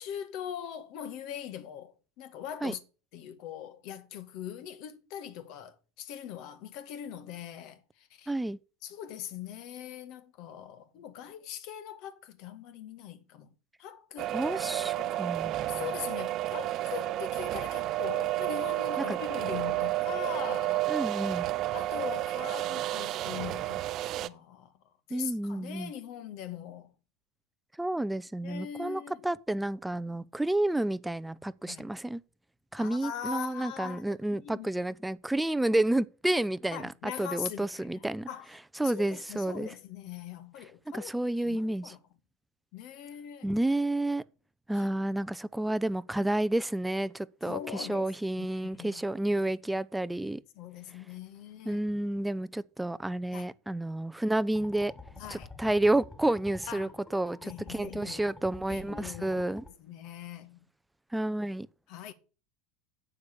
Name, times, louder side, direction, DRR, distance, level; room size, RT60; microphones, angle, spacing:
voice 1, 0.0-2.8 3.1-8.3 8.8-13.5 13.8-14.4 15.0-15.2 15.7-20.9 21.7-24.7 25.1-26.9 28.4-29.2 31.7-31.8 32.7-34.7 36.7-38.5 38.8-41.1 41.4-42.0 42.7-43.5 44.7-44.9 47.4-48.1 48.4-49.1 50.6-51.8 53.3-53.5 55.2-55.5 56.7-56.9 57.4-58.3 58.7-59.4 59.8-60.6 61.9-62.1, left 9 dB, 55° left, 1.9 m, -41 dB
voice 2, 8.3-8.6 14.3-15.8 19.0-19.2 20.9-21.5 25.1-25.9 27.8-32.2 32.7-38.3 38.8-39.7 40.9-41.9 43.4-44.2 44.7-50.4 51.7-54.9 55.3-59.6 61.1-61.7, right 1 dB, 5° right, 0.7 m, -30 dB
sound 1, 14.2-24.3, right 15 dB, 45° right, 0.8 m, -31 dB
sound 2, 54.5-59.7, left 3 dB, 15° left, 3.6 m, -49 dB
9.5 x 8.0 x 8.6 m
figure-of-eight pair, 80°, 0 cm